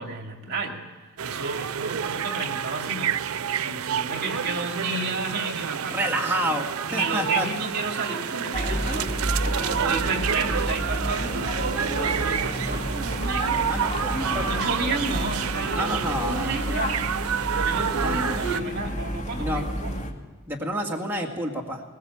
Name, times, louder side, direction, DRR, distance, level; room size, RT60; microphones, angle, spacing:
voice 1, 0.0-3.2 3.5-6.6 6.9-9.1 9.6-13.7 14.4-17.0 17.6-20.0, right 3 dB, 50° right, 3 dB, 2.6 m, -32 dB
sound 1, 1.2-18.6, right 8 dB, 85° right, 0.6 m, -29 dB
voice 2, 5.9-7.5 12.7-12.8 13.7-14.5 15.7-16.6 18.0-18.4 19.4-19.7 20.5-21.8, right 1 dB, 10° right, -1 dB, 2.2 m, -29 dB
sound 2, 8.5-20.1, equal, 35° left, 2.3 m, -30 dB
21.5 x 20.0 x 7.3 m, 1.3 s
head